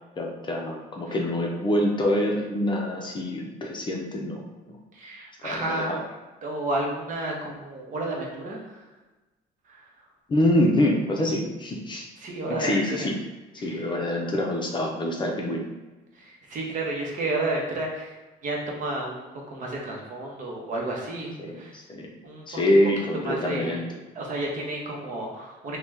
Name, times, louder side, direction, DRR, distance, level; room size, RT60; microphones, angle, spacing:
voice 1, 0.2-4.8 5.4-6.0 10.3-12.1 12.5-13.2 13.5-15.6 21.4-22.1 22.5-24.0, left 1 dB, 30° left, 0 dB, 0.5 m, -25 dB
voice 2, 4.9-6.0 6.4-8.8 9.7-9.8 12.2-13.1 13.6-13.9 16.2-18.1 18.4-21.7 22.2-22.6 23.2-23.8 24.1-25.8, right 2 dB, 50° right, -1 dB, 0.8 m, -31 dB
2.8 x 2.2 x 3.4 m, 1.2 s
cardioid pair, 110°, 17 cm